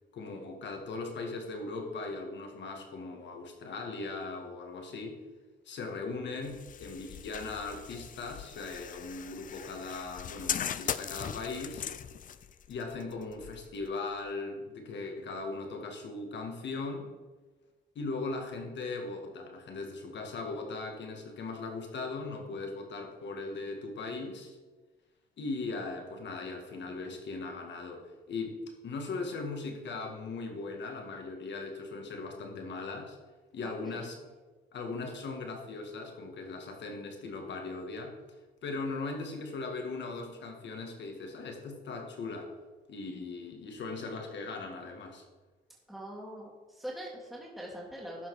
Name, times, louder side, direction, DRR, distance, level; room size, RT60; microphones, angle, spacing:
voice 1, 0.1-5.2 5.7-11.9 12.7-17.1 18.0-24.6 25.4-28.6 28.8-33.2 33.5-34.1 34.7-38.2 38.6-42.5 42.9-45.2, left 3 dB, 65° left, 3 dB, 1.8 m, -39 dB
sound 1, 6.4-14.3, left 9 dB, 45° left, 0.4 m, -40 dB
voice 2, 33.6-34.1 45.9-48.3, equal, ahead, -7 dB, 1.8 m, -43 dB
12.0 x 5.0 x 4.8 m, 1.3 s
cardioid pair, 90°, 20 cm